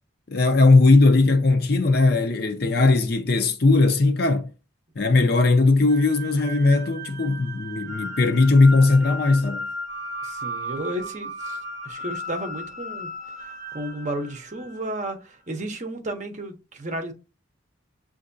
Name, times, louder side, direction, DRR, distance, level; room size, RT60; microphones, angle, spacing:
voice 1, 0.3-4.5 5.0-9.7, left 3 dB, 50° left, 0.6 m, -18 dB
sound 1, 5.9-15.0, equal, 20° right, 1.5 m, -35 dB
voice 2, 10.2-11.6 11.8-13.1 13.7-17.1, right 1 dB, 35° right, 0.7 m, -32 dB
7.6 x 2.6 x 2.6 m
head